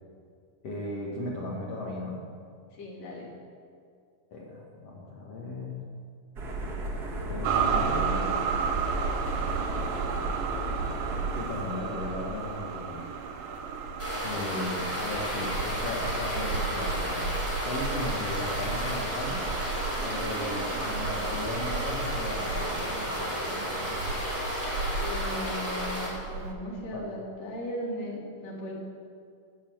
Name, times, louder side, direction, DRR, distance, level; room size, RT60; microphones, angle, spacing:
voice 1, 0.6-2.2 4.3-5.8 7.3-8.4 9.4-9.7 11.3-13.0 14.2-17.3 17.6-19.5 20.0-22.8 26.9-27.1, left 2 dB, 55° left, -2 dB, 2.2 m, -36 dB
voice 2, 2.7-3.3 14.3-14.6 25.0-28.7, equal, 70° left, -3 dB, 4.3 m, -37 dB
sound 1, 6.4-11.4, right 2 dB, 40° right, 1.5 m, -34 dB
sound 2, 7.4-26.5, right 5 dB, 80° right, 2.7 m, -33 dB
sound 3, 14.0-26.1, equal, 5° left, 2.9 m, -33 dB
16.0 x 6.7 x 7.8 m, 2.2 s
omnidirectional pair, 3.9 m